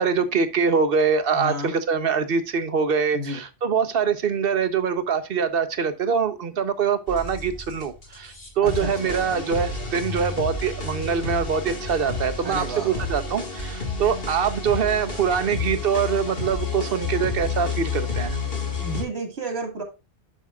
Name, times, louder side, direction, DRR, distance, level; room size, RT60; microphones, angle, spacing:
voice 1, 0.0-18.4, right 6 dB, 65° right, 1.1 m, -24 dB
voice 2, 1.3-1.7 3.1-3.4 8.6-9.2 12.4-13.1 18.8-19.8, right 1 dB, 80° right, 2.4 m, -32 dB
sound 1, 7.1-19.0, left 4 dB, 65° left, 2.2 m, -30 dB
11.0 x 5.5 x 2.4 m
omnidirectional pair, 1.1 m